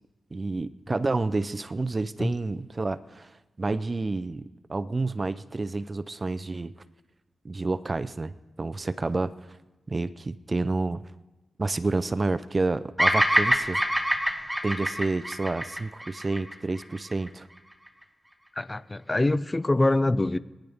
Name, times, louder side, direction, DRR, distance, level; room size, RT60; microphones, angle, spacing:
voice 1, 0.3-3.3 3.6-6.7 7.4-8.3 8.6-9.3 9.9-11.1 11.6-13.8 14.6-17.5, right 3 dB, 30° right, 0.5 m, -29 dB
Bird vocalization bird call bird song, 13.0-17.3, equal, ahead, 1.0 m, -25 dB
voice 2, 18.6-20.4, left 2 dB, 20° left, 0.4 m, -24 dB
22.5 x 10.0 x 3.5 m
wide cardioid pair, 95°, 0 cm